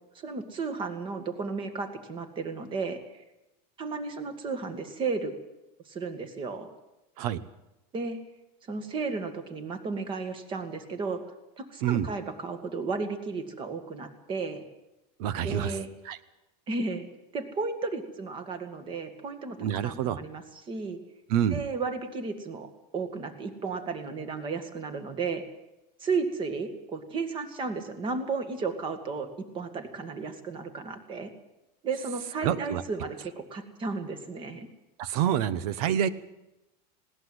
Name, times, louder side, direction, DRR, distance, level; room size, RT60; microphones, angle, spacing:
voice 1, 0.2-3.0 3.8-5.3 5.9-6.7 7.9-8.2 8.7-11.2 11.6-14.6 15.4-15.9 16.7-17.1 17.3-19.6 19.8-21.0 21.5-25.4 26.0-29.3 29.5-31.3 31.8-34.7, right 4 dB, 25° right, 9 dB, 2.1 m, -33 dB
voice 2, 15.2-15.8 16.0-16.2 19.6-20.2 21.3-21.6 32.4-32.8 35.0-36.1, right 10 dB, 65° right, 16 dB, 1.2 m, -27 dB
20.0 x 17.5 x 8.0 m, 0.94 s
supercardioid pair, 170°, 21 cm